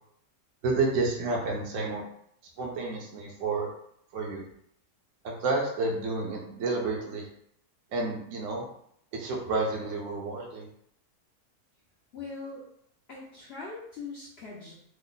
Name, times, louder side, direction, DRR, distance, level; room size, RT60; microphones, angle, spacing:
voice 1, 0.6-2.0 2.6-3.7 4.1-4.4 5.2-7.3 7.9-8.7 9.1-10.7, right 3 dB, 65° right, -1 dB, 0.9 m, -30 dB
voice 2, 12.1-12.6 13.1-14.7, left 4 dB, 65° left, -5 dB, 0.6 m, -41 dB
3.1 x 2.0 x 3.7 m, 0.70 s
omnidirectional pair, 1.7 m